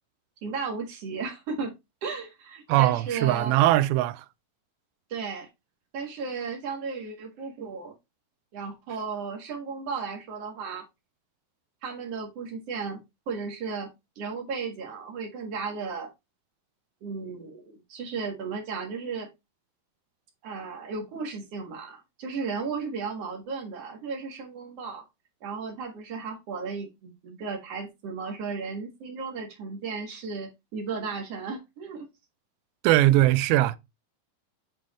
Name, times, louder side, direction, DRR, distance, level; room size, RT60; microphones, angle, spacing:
voice 1, 0.4-1.7 2.0-3.5 5.1-5.5 5.9-7.9 8.5-10.8 11.8-13.0 13.3-13.9 14.2-16.1 17.0-19.3 20.4-25.0 25.4-32.1, right 5 dB, 50° right, 2.3 m, -35 dB
voice 2, 2.7-4.3 32.8-33.8, right 15 dB, 85° right, 2.4 m, -21 dB
8.8 x 3.7 x 3.1 m
omnidirectional pair, 4.3 m